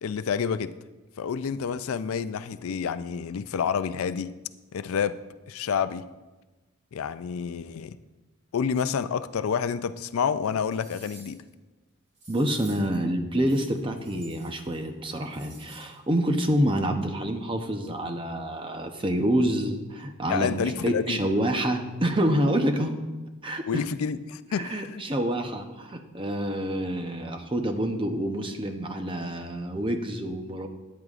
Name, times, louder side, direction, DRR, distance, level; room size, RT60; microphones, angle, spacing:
voice 1, 0.0-0.7 1.2-4.3 4.7-5.2 5.5-6.1 6.9-8.0 8.5-11.4 20.3-21.2 23.7-25.0, left 6 dB, 75° left, 13 dB, 0.4 m, -29 dB
sound 1, 10.0-10.1 10.5-11.5 12.1-13.0 13.4-14.8 15.1-15.9 16.3-16.4, right 3 dB, 50° right, 2.2 m, -51 dB
voice 2, 12.3-23.0 23.4-23.8 24.6-30.7, right 1 dB, 25° right, 5 dB, 0.7 m, -27 dB
13.5 x 9.4 x 2.5 m, 1.2 s
head